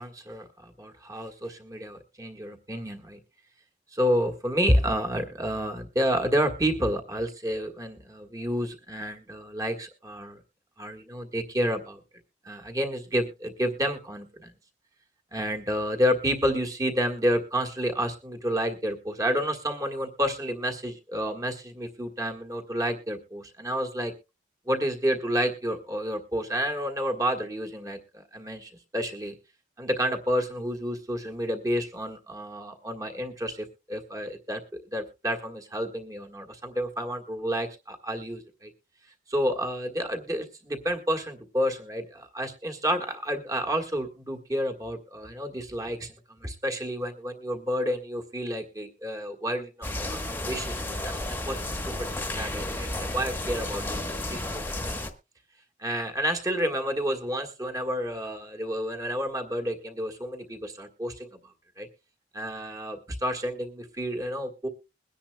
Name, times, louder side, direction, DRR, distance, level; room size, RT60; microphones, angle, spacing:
voice 1, 0.0-3.2 3.9-10.4 10.8-12.0 12.4-14.5 15.3-24.1 24.7-29.3 29.8-38.7 39.3-49.9 50.1-51.6 51.9-52.1 52.3-54.0 54.3-54.6 55.8-61.9 62.3-64.7, equal, 20° right, 4 dB, 1.6 m, -30 dB
sound 1, 49.8-55.1, left 1 dB, 10° left, 1.2 m, -32 dB
22.0 x 10.0 x 2.3 m, 0.28 s
head